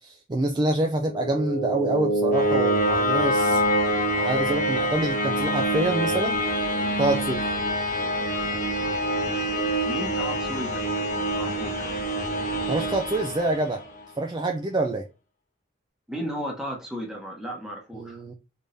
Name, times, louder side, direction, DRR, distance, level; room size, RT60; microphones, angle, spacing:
voice 1, 0.0-3.6 4.1-6.4 7.0-7.4 12.7-13.8 14.2-15.0 17.9-18.3, right 2 dB, 20° right, 0.3 m, -26 dB
sound 1, 1.0-14.0, equal, 40° left, 1.0 m, -26 dB
voice 2, 9.8-10.8 11.3-11.9 16.1-18.2, equal, 5° right, 1.0 m, -34 dB
3.4 x 3.4 x 2.6 m
head